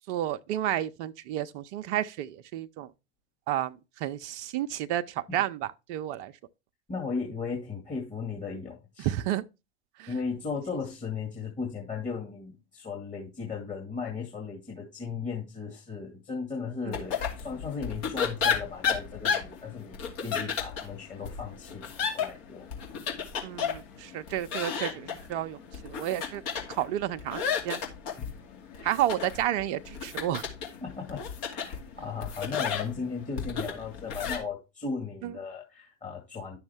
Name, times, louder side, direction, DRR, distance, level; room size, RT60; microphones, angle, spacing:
voice 1, 0.1-2.9 3.5-6.3 9.0-9.4 10.0-10.1 16.9-17.0 23.4-26.4 26.7-27.8 28.8-30.5 35.2-35.4, right 12 dB, 50° right, 0.7 m, -31 dB
voice 2, 6.9-9.1 10.1-22.7 28.2-28.3 28.7-29.0 30.8-36.6, left 5 dB, 20° left, 2.2 m, -36 dB
sound 1, 16.9-34.4, left 7 dB, 50° left, 2.5 m, -33 dB
10.5 x 6.3 x 3.5 m
figure-of-eight pair, 90°, 36 cm